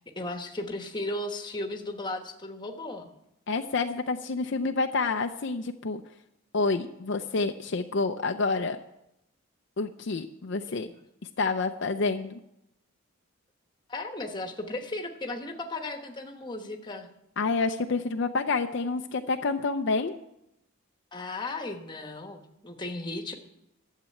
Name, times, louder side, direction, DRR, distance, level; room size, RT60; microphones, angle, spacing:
voice 1, 0.2-3.1 10.7-10.9 13.9-17.1 21.1-23.4, left 2 dB, 20° left, 4 dB, 1.1 m, -35 dB
voice 2, 3.5-6.0 6.5-8.8 9.8-10.9 11.4-12.4 17.4-20.1, left 3 dB, 55° left, 6 dB, 0.5 m, -28 dB
12.0 x 7.5 x 8.5 m, 0.84 s
head